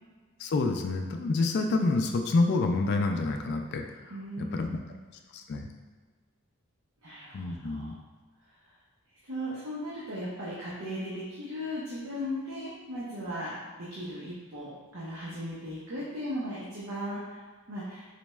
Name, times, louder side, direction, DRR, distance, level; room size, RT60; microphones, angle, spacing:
voice 1, 0.4-3.8 4.4-4.7 5.3-5.7 7.3-7.9, left 3 dB, 50° left, 4 dB, 0.3 m, -27 dB
voice 2, 4.1-4.9 7.0-7.9 9.2-18.1, equal, 70° right, -8 dB, 0.8 m, -37 dB
4.3 x 2.2 x 3.1 m, 1.4 s
head